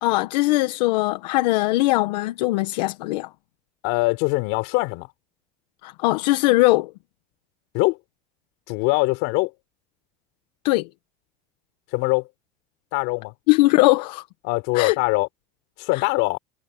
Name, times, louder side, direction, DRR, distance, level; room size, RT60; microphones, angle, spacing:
voice 1, 0.0-3.3 5.8-6.9 10.6-10.9 13.5-14.2 14.7-15.0 15.9-16.1, left 19 dB, 90° left, 1.5 m, -20 dB
voice 2, 3.8-5.1 7.7-8.0 8.7-9.5 11.9-12.3 12.9-13.3 14.4-15.3 15.8-16.4, left 26 dB, 65° left, 5.5 m, -22 dB
cardioid pair, 155°, 21 cm